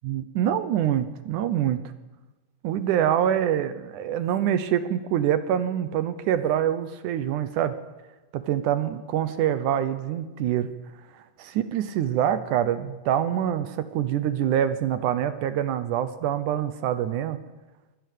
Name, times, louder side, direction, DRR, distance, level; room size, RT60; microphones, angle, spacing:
voice 1, 0.0-1.9 2.6-7.8 8.3-10.7 11.4-17.4, right 10 dB, 75° right, 12 dB, 2.3 m, -25 dB
23.5 x 12.0 x 9.3 m, 1.2 s
omnidirectional pair, 3.8 m